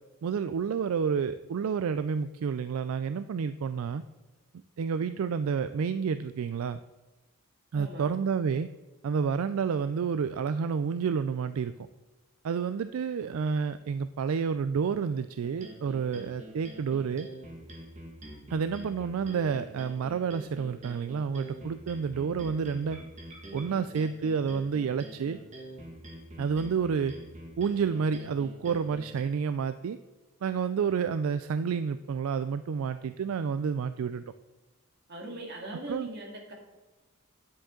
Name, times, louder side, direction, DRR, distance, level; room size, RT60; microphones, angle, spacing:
voice 1, 0.2-4.0 4.8-6.8 7.7-8.7 9.0-11.7 12.4-17.3 18.5-23.0 23.5-25.4 26.4-27.1 27.6-30.0 30.4-34.2 35.9-36.1, right 6 dB, 75° right, 12 dB, 0.3 m, -29 dB
voice 2, 7.7-8.1 35.1-36.5, right 1 dB, 50° right, 0 dB, 2.1 m, -40 dB
sound 1, 15.4-29.2, right 1 dB, 35° right, 1.6 m, -45 dB
9.8 x 7.5 x 3.8 m, 1.2 s
head